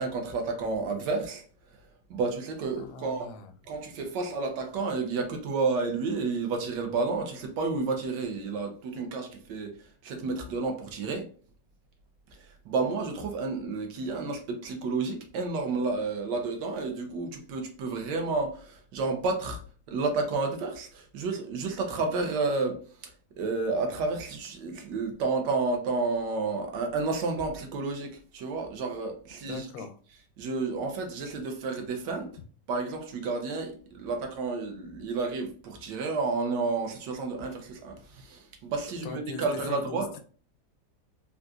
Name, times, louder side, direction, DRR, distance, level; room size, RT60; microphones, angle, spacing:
voice 1, 0.0-1.4 2.1-3.3 3.7-11.3 12.3-19.6 19.9-23.1 23.4-29.6 30.4-32.3 32.7-40.1, right 3 dB, 75° right, 1.2 m, -31 dB
voice 2, 2.8-3.5 29.5-29.9 39.0-40.2, left 3 dB, 85° left, 1.3 m, -40 dB
3.8 x 2.4 x 2.3 m
omnidirectional pair, 2.0 m